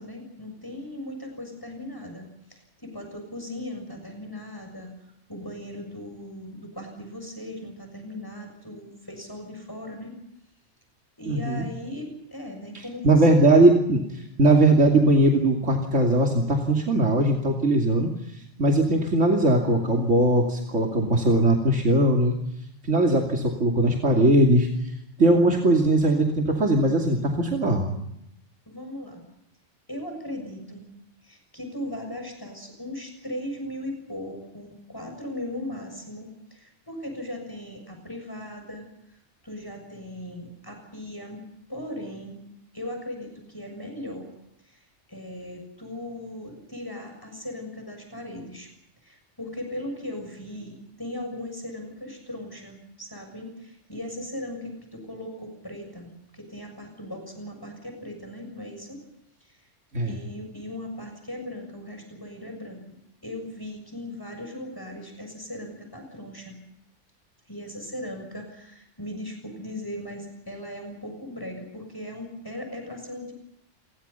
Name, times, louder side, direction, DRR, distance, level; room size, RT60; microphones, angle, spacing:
voice 1, 0.0-10.1 11.2-13.3 28.6-29.2 29.9-30.9 31.2-41.4 41.7-42.4 42.7-44.3 44.6-48.7 49.0-59.0 59.4-59.7 60.0-62.8 63.2-66.6 67.5-73.3, left 1 dB, 20° left, 3 dB, 6.8 m, -38 dB
voice 2, 11.3-11.7 12.7-22.4 22.8-24.9 25.2-27.9 59.9-60.2, right 1 dB, 90° right, 1 dB, 3.1 m, -20 dB
30.0 x 23.5 x 5.7 m, 0.80 s
omnidirectional pair, 1.2 m